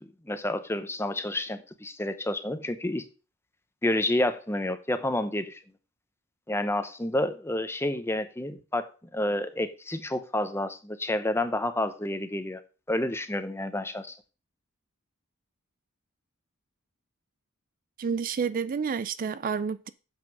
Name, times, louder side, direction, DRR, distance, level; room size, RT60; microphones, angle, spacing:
voice 1, 0.0-3.1 3.8-5.6 6.5-12.6 12.9-14.2, left 1 dB, 10° left, 0.8 m, -29 dB
voice 2, 18.0-19.9, right 6 dB, 40° right, 0.4 m, -29 dB
7.5 x 6.1 x 6.0 m
head